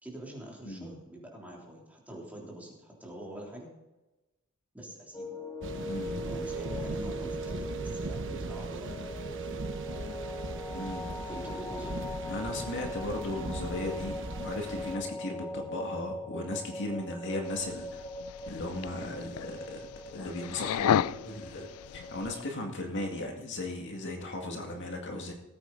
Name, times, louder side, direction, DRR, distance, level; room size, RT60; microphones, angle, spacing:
voice 1, 0.0-3.7 4.7-5.3 6.3-9.6 11.3-12.0, right 1 dB, 5° right, -3 dB, 3.4 m, -45 dB
sound 1, 5.1-22.5, equal, 15° left, 1.1 m, -40 dB
sound 2, 5.6-15.0, right 2 dB, 60° right, 1.1 m, -39 dB
voice 2, 5.8-6.2 10.7-11.1 12.3-18.0 18.5-19.8 20.1-25.3, left 1 dB, 60° left, 2 dB, 2.1 m, -36 dB
sound 3, 17.5-22.4, left 9 dB, 90° left, 0.3 m, -33 dB
18.5 x 9.0 x 4.0 m, 1.0 s
head